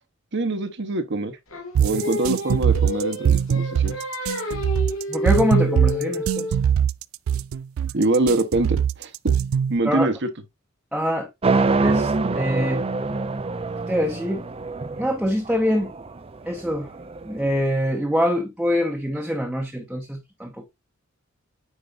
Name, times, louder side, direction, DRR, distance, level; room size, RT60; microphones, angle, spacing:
voice 1, 0.3-1.4 1.8-4.0 4.4-4.6 7.9-9.3 9.7-10.3, right 2 dB, 60° right, 1.1 m, -24 dB
Singing, 1.5-6.7, left 2 dB, 80° left, 2.3 m, -29 dB
sound 1, 1.7-9.8, right 8 dB, 75° right, 0.3 m, -21 dB
voice 2, 5.1-6.5 9.8-10.1 10.9-11.3 11.8-12.8 13.9-14.4 15.0-15.9 16.5-16.9 17.3-20.6, equal, 5° right, 0.9 m, -24 dB
sound 2, 11.4-17.5, right 3 dB, 30° right, 0.5 m, -25 dB
9.1 x 4.6 x 2.6 m
head